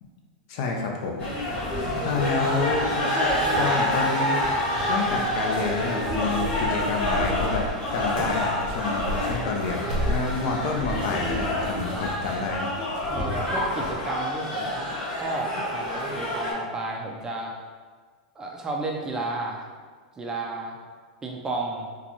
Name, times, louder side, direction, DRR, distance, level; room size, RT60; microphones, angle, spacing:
voice 1, 0.5-1.3 2.0-2.9 3.6-4.5 4.9-7.6 7.9-12.7, left 4 dB, 55° left, 1 dB, 0.6 m, -29 dB
sound 1, 1.2-16.5, left 1 dB, 40° left, 1.3 m, -27 dB
voice 2, 1.9-2.3 13.1-17.5 18.4-19.7 20.2-20.8 21.2-21.9, right 2 dB, 15° right, -1 dB, 0.4 m, -32 dB
sound 2, 7.0-12.4, equal, 90° right, 0.7 m, -35 dB
3.8 x 2.2 x 3.0 m, 1.5 s
supercardioid pair, 135°, 4 cm